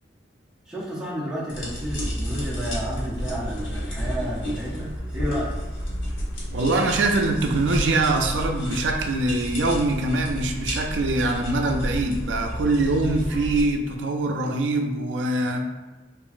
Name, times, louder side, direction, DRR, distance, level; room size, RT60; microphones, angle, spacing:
voice 1, 0.7-5.5, equal, 5° right, -8 dB, 0.6 m, -31 dB
sound 1, 1.5-13.6, equal, 90° left, 0.9 m, -31 dB
voice 2, 6.5-15.7, right 2 dB, 75° right, 3 dB, 0.4 m, -23 dB
2.9 x 2.4 x 2.4 m, 1.1 s
head